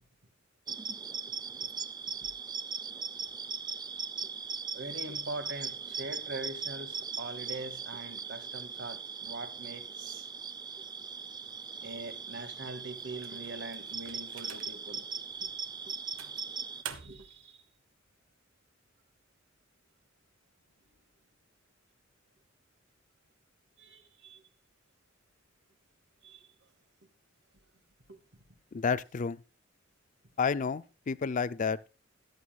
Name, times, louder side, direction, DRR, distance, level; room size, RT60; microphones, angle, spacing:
sound 1, 0.7-16.8, right 5 dB, 20° right, 0.6 m, -39 dB
voice 1, 4.7-10.3 11.8-15.0 15.9-16.0 16.9-17.7 23.8-24.4 26.2-26.5 28.1-28.2, right 2 dB, 60° right, 2.0 m, -43 dB
sound 2, 13.2-14.9 15.5-15.6 16.2-17.4, right 8 dB, 90° right, 1.3 m, -46 dB
voice 2, 28.7-29.4 30.4-31.8, left 5 dB, 40° left, 0.4 m, -30 dB
14.5 x 11.0 x 2.3 m
head